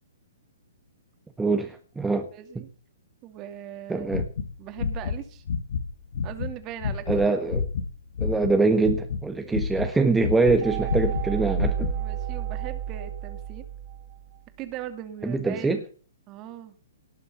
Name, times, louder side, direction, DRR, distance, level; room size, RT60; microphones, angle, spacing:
voice 1, 1.4-2.3 3.9-4.3 7.1-7.7 8.2-11.9 15.2-15.8, right 3 dB, 5° right, 6 dB, 1.4 m, -24 dB
voice 2, 2.3-2.7 3.2-4.1 4.6-5.4 6.2-7.1 9.4-9.5 11.9-13.7 14.6-15.8 16.3-16.7, right 11 dB, 30° right, 9 dB, 2.3 m, -39 dB
sound 1, 4.0-5.2 5.5-5.8 6.1-8.6 8.8-10.6 10.9-11.9, left 5 dB, 65° left, 2.2 m, -28 dB
sound 2, 10.6-14.4, right 11 dB, 45° right, 3.7 m, -32 dB
18.5 x 7.0 x 5.5 m, 0.39 s
figure-of-eight pair, 125°, 0 cm